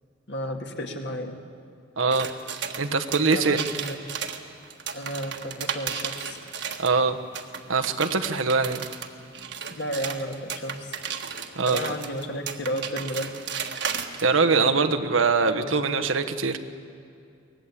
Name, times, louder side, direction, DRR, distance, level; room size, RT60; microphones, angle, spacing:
voice 1, 0.3-1.4 3.2-4.0 4.9-6.4 9.8-11.0 11.6-13.3 14.4-14.8 15.5-15.9, equal, 60° left, 3 dB, 2.2 m, -33 dB
voice 2, 2.0-2.3 2.8-3.6 6.8-7.2 7.7-8.8 11.6-11.8 14.2-16.6, right 4 dB, 85° right, 6 dB, 1.2 m, -22 dB
sound 1, 2.1-6.9 7.3-14.2, right 7 dB, 60° right, 1.5 m, -34 dB
23.5 x 19.0 x 8.6 m, 2.4 s
head